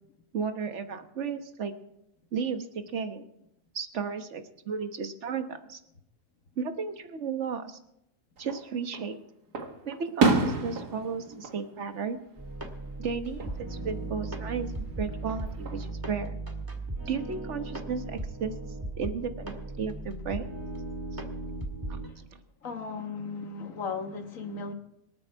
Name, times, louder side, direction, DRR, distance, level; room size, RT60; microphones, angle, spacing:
voice 1, 0.3-1.7 2.3-3.2 3.7-5.8 6.6-7.8 8.4-9.2 9.8-12.2 13.0-16.4 17.1-18.5 19.0-20.5 21.1-21.2 21.9-22.3, right 6 dB, 50° right, 8 dB, 1.4 m, -34 dB
Fireworks, 8.4-9.1 9.5-12.7 13.0-13.6 15.1-15.9, right 4 dB, 90° right, 2.3 m, -30 dB
sound 1, 12.4-22.1, right 2 dB, 15° right, 1.6 m, -37 dB
voice 2, 22.6-24.7, left 4 dB, 55° left, 5 dB, 1.8 m, -36 dB
25.5 x 8.8 x 4.6 m, 0.81 s
omnidirectional pair, 1.7 m